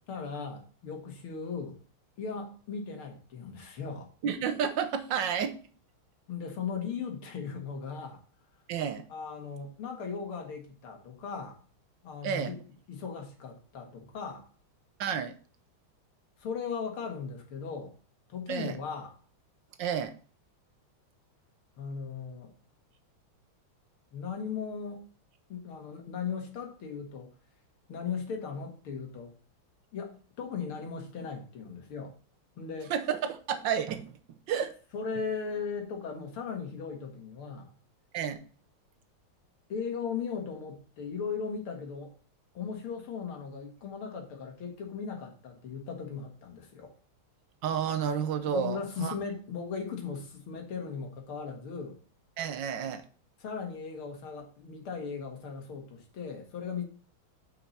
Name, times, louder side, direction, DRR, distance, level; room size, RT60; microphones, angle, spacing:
voice 1, 0.1-1.8 2.2-4.1 6.3-8.2 9.1-11.6 12.0-12.6 12.9-14.5 16.4-17.9 18.3-19.1 21.8-22.5 24.1-25.1 25.5-27.3 27.9-29.3 29.9-32.2 32.6-32.9 34.9-37.7 39.7-42.1 42.5-47.0 48.5-52.0 53.4-56.8, left 5 dB, 80° left, 2.5 m, -37 dB
voice 2, 4.2-5.6 8.7-9.1 12.2-12.5 15.0-15.3 18.5-18.8 19.8-20.1 32.9-34.1 34.5-34.7 38.1-38.4 47.6-49.1 52.4-53.0, right 8 dB, 65° right, 1.4 m, -31 dB
9.0 x 5.8 x 4.2 m
omnidirectional pair, 2.3 m